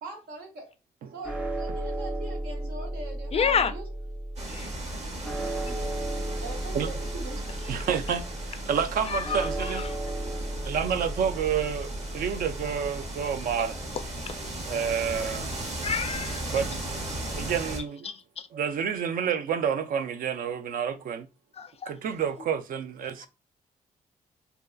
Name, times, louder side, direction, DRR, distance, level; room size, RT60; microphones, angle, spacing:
voice 1, 0.0-0.7 1.1-3.9 5.6-6.1 6.4-7.4, right 3 dB, 90° right, 0.8 m, -42 dB
sound 1, 1.2-15.5, right 1 dB, 10° right, 0.6 m, -35 dB
voice 2, 3.3-3.7 4.5-4.7 9.1-9.9 15.8-16.5 17.2-17.3 21.6-21.9, left 6 dB, 40° left, 0.4 m, -29 dB
sound 2, 4.4-17.8, right 1 dB, 45° right, 0.9 m, -37 dB
voice 3, 7.7-9.9 10.6-13.8 14.7-15.5 16.5-16.8 17.3-18.1 18.5-21.3 21.9-23.3, right 7 dB, 65° right, 0.4 m, -29 dB
2.5 x 2.3 x 2.2 m
cardioid pair, 60°, 15 cm